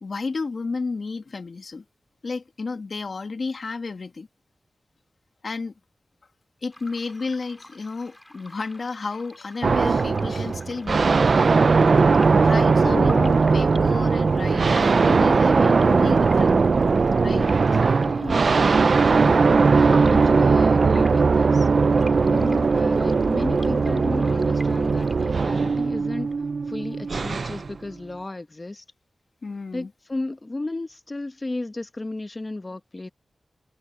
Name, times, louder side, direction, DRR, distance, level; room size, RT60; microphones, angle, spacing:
voice 1, 0.0-1.8 2.2-4.3 5.4-5.7 6.6-11.1 12.4-16.6 17.2-17.8 20.0-20.5 22.2-22.5 29.4-29.9, left 4 dB, 60° left, 2.0 m, -32 dB
sound 1, 6.7-25.5, left 1 dB, 10° left, 4.7 m, -47 dB
sound 2, 9.6-27.7, right 4 dB, 65° right, 0.5 m, -19 dB
voice 2, 18.1-18.5 19.0-19.5 20.1-22.0 22.3-26.3 26.7-28.8 29.7-33.1, left 2 dB, 30° left, 1.4 m, -34 dB
wide cardioid pair, 80°, 0 cm